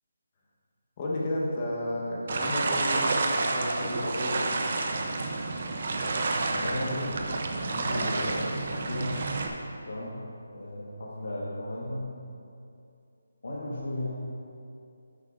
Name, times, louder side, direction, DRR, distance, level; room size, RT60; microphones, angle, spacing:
voice 1, 1.0-4.6, left 1 dB, 20° left, -4 dB, 1.1 m, -32 dB
sound 1, 2.3-9.5, right 3 dB, 40° right, 0.6 m, -29 dB
voice 2, 6.5-9.1 9.8-12.1 13.4-14.1, left 1 dB, 65° left, -7 dB, 1.3 m, -35 dB
11.0 x 8.1 x 2.6 m, 2.6 s
hypercardioid pair, 175°, 0 cm